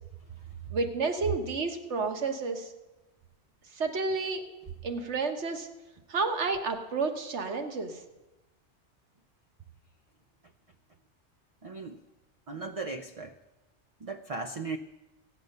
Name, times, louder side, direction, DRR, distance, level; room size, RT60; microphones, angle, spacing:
voice 1, 0.7-2.7 3.7-4.4 4.8-5.7 6.1-8.0, right 4 dB, 75° right, 5 dB, 1.5 m, -30 dB
voice 2, 11.6-12.0 12.5-13.4 14.0-14.8, right 3 dB, 45° right, 6 dB, 0.5 m, -37 dB
14.5 x 9.3 x 6.5 m, 1.1 s
omnidirectional pair, 1.2 m